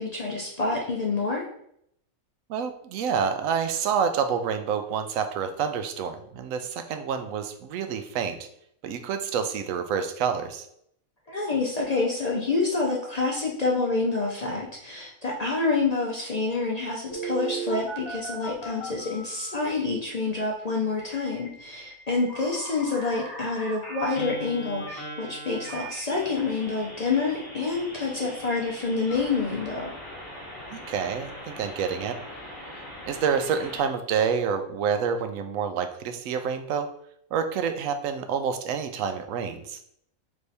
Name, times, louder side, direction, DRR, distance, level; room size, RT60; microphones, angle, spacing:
voice 1, 0.0-1.5 11.3-29.9, left 3 dB, 50° left, -2 dB, 0.5 m, -27 dB
voice 2, 2.5-8.4 8.8-10.6 30.7-32.2 33.1-36.9 37.3-39.8, right 6 dB, 70° right, 8 dB, 0.9 m, -28 dB
Telephone, 17.1-19.6 21.0-33.8, right 2 dB, 20° left, 0.9 m, -39 dB
3.3 x 3.3 x 4.0 m, 0.71 s
omnidirectional pair, 1.5 m